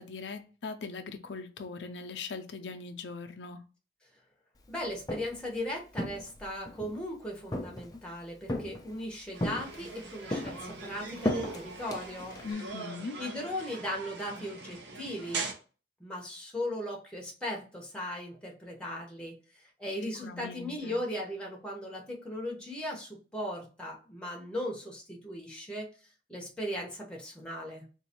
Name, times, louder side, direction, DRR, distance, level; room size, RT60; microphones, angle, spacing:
voice 1, 0.0-3.6 12.4-13.2 20.2-21.0, left 4 dB, 80° left, 0.5 m, -40 dB
voice 2, 4.7-12.4 13.2-15.5 16.0-25.9 26.3-27.8, left 1 dB, 5° left, 1.0 m, -38 dB
Walk footsteps, 4.8-5.5 5.9-7.0 7.5-8.1 8.5-9.0 9.4-10.0 10.3-12.5, left 1 dB, 20° left, 0.5 m, -35 dB
sound 1, 9.3-15.5, right 4 dB, 85° right, 0.8 m, -41 dB
3.8 x 2.6 x 2.9 m
head